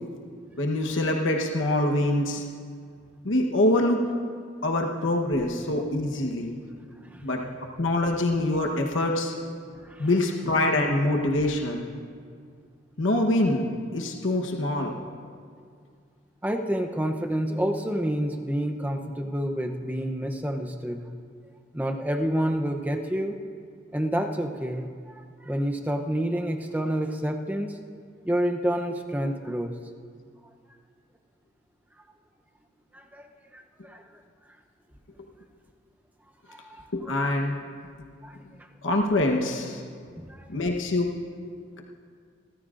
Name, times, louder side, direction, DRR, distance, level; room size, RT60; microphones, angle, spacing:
voice 1, 0.6-2.5 3.2-4.0 4.6-6.6 7.2-7.4 7.8-9.4 10.0-11.9 13.0-15.0 36.9-37.6 38.8-39.8 40.5-41.1, left 1 dB, 90° left, 1 dB, 1.1 m, -25 dB
voice 2, 7.0-7.6 9.7-10.1 16.4-21.0 21.7-23.4 23.9-27.8 28.2-29.8 32.9-33.3 33.5-34.2 36.5-37.4 38.2-38.7 40.2-40.5, equal, 10° right, 4 dB, 0.6 m, -29 dB
27.5 x 13.5 x 2.5 m, 2.1 s
head